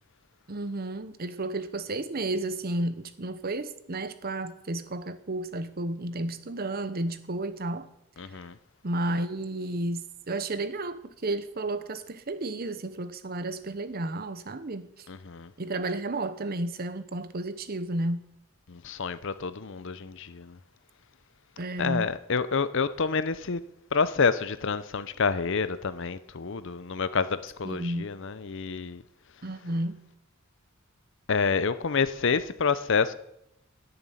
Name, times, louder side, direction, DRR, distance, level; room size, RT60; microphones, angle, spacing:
voice 1, 0.5-7.9 8.8-15.1 15.6-18.2 21.6-22.1 27.6-28.1 29.4-30.0, right 2 dB, 45° right, 0.8 m, -32 dB
voice 2, 8.2-8.5 15.1-15.5 18.7-20.6 21.8-23.6 23.9-29.0 31.3-33.1, left 5 dB, 60° left, 0.6 m, -28 dB
10.5 x 7.0 x 9.2 m
head